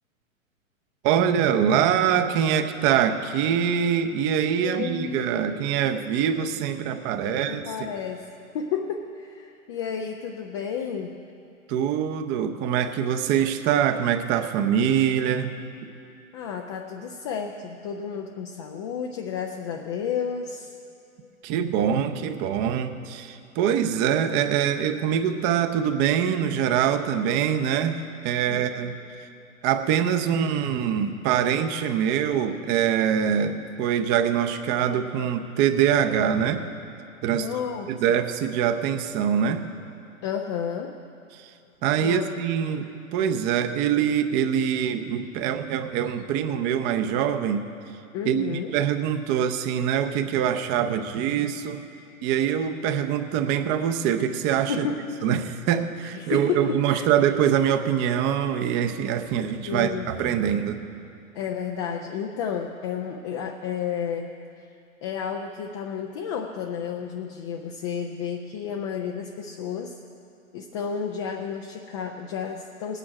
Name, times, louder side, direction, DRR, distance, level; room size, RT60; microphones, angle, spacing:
voice 1, 1.0-7.6 11.7-15.6 21.4-29.0 29.6-36.6 37.2-37.5 37.9-39.6 41.3-41.5 41.8-47.7 48.2-51.8 52.2-54.9 55.2-60.8, right 9 dB, 25° right, 7 dB, 0.6 m, -24 dB
voice 2, 4.6-5.6 7.2-8.3 8.5-11.2 16.3-20.7 28.5-28.9 37.3-37.9 40.2-41.0 42.0-42.3 48.1-48.7 54.7-55.0 56.1-57.1 59.6-60.1 61.3-64.3 64.6-64.7 65.0-70.0 70.5-73.0, left 7 dB, 25° left, 2 dB, 0.4 m, -31 dB
19.0 x 9.1 x 4.8 m, 2.6 s
hypercardioid pair, 120°, 42 cm